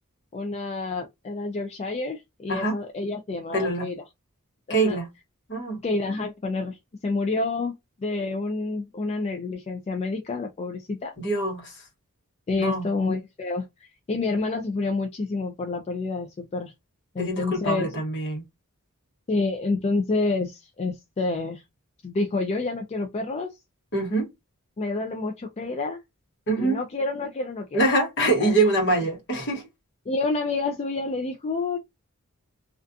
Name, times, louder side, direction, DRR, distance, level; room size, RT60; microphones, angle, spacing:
voice 1, 0.3-4.0 4.7-5.0 5.8-6.8 7.0-11.1 12.5-16.7 17.1-17.9 19.3-21.6 22.0-23.6 24.8-26.0 26.6-27.8 28.3-28.6 30.1-31.8, left 3 dB, 30° left, 0.3 m, -28 dB
voice 2, 3.5-3.9 4.7-5.1 5.5-5.8 11.2-11.7 12.6-12.9 17.2-18.4 23.9-24.3 26.5-26.8 27.7-29.7, right 2 dB, 55° left, 1.1 m, -24 dB
2.4 x 2.3 x 2.4 m
head